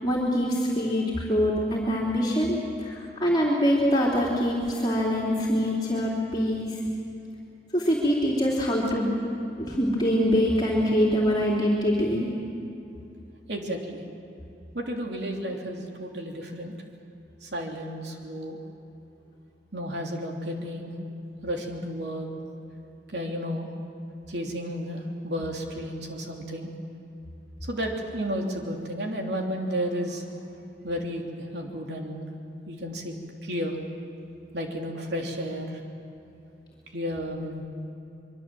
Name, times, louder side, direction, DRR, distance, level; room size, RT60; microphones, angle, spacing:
voice 1, 0.0-6.8 7.7-9.1 9.6-12.3, equal, 25° left, -5 dB, 3.3 m, -24 dB
voice 2, 13.5-14.0 14.7-16.7 17.4-18.6 19.7-21.0 21.4-22.3 23.1-23.7 24.3-26.7 27.6-30.4 30.8-32.3 32.7-33.1 33.4-33.8 34.5-35.8 36.9-37.6, equal, 80° right, 1 dB, 3.1 m, -32 dB
25.5 x 23.0 x 7.7 m, 2.8 s
head